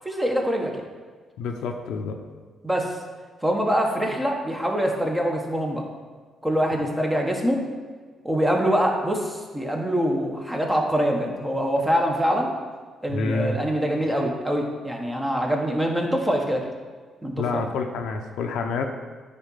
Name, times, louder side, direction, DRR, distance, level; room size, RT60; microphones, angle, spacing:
voice 1, 0.0-0.8 2.6-3.0 3.4-5.8 6.4-7.6 8.2-12.5 13.0-16.7 17.2-17.6, equal, 10° right, 1 dB, 1.4 m, -24 dB
voice 2, 1.4-2.2 13.1-13.6 17.4-18.8, left 4 dB, 85° left, 4 dB, 0.8 m, -28 dB
9.1 x 4.1 x 5.7 m, 1.5 s
cardioid pair, 90°, 0 cm